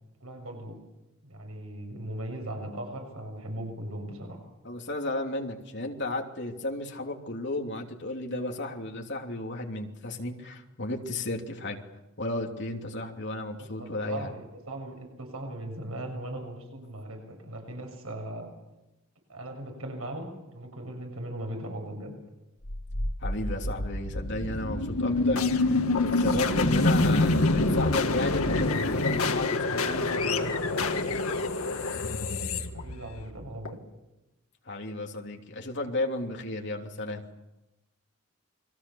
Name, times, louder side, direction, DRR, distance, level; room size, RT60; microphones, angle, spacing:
voice 1, 0.2-0.8 1.2-4.4 13.4-18.5 19.3-22.1 32.7-33.8, right 1 dB, 85° right, 3 dB, 7.0 m, -39 dB
voice 2, 4.6-11.8 12.2-14.3 23.2-30.5 34.6-37.2, left 2 dB, 55° left, 2 dB, 3.0 m, -33 dB
sound 1, 22.6-33.7, left 2 dB, 90° left, 1.9 m, -26 dB
29.5 x 22.0 x 7.1 m, 0.97 s
head